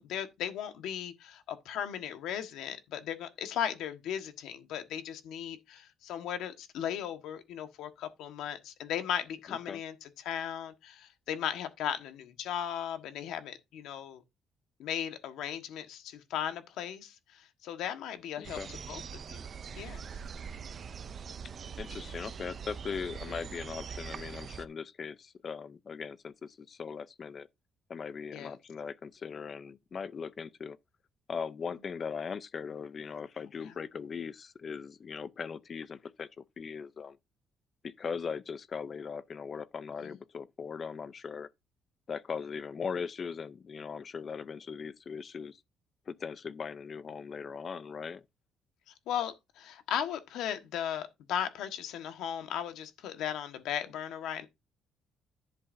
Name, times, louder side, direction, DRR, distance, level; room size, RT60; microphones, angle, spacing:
voice 1, 0.0-14.2 14.8-19.0 19.3-19.4 19.8-20.1 28.3-28.6 33.6-33.7 40.0-40.2 48.9-54.5, left 9 dB, 80° left, 1.4 m, -37 dB
voice 2, 9.5-9.8 18.4-18.7 21.8-27.5 27.9-30.8 31.3-37.2 37.8-41.5 42.1-45.6 46.1-48.2, left 6 dB, 30° left, 0.5 m, -39 dB
sound 1, 18.4-24.7, right 6 dB, 35° right, 0.5 m, -43 dB
11.0 x 7.9 x 2.6 m
cardioid pair, 175°, 0 cm